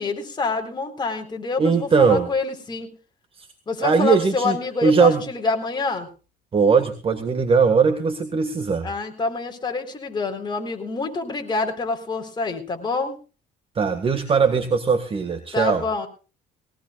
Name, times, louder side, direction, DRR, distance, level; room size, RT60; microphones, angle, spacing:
voice 1, 0.0-2.9 3.7-6.1 8.8-13.2 15.5-16.1, left 4 dB, 25° left, 3 dB, 4.0 m, -26 dB
voice 2, 1.6-2.3 3.4-3.5 3.8-4.6 4.8-5.2 6.5-8.9 13.8-15.8, right 5 dB, 35° right, 7 dB, 1.7 m, -19 dB
20.5 x 18.0 x 2.4 m, 0.34 s
cardioid pair, 110°, 17 cm